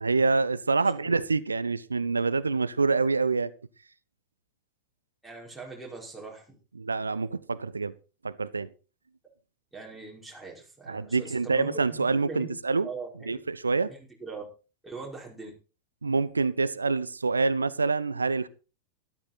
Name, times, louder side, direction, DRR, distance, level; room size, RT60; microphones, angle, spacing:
voice 1, 0.0-3.5 6.8-7.9 8.2-8.7 10.9-12.9 13.3-13.9 16.0-18.5, right 4 dB, 75° right, 0.6 m, -26 dB
voice 2, 5.2-6.6 9.7-12.5 12.8-13.4 13.9-14.4 14.8-15.5, right 4 dB, 5° right, 5.2 m, -41 dB
13.0 x 12.0 x 4.3 m
figure-of-eight pair, 90°, 0 cm